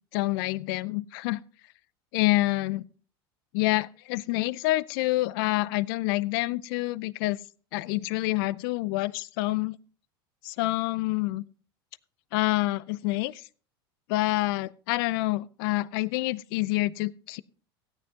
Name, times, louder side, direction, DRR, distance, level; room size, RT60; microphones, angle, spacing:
voice 1, 0.1-1.4 2.1-2.8 3.5-7.4 7.7-9.8 10.4-11.4 12.3-13.5 14.1-17.4, left 19 dB, 65° left, 0.5 m, -27 dB
16.5 x 9.5 x 2.8 m
hypercardioid pair, 85°, 13 cm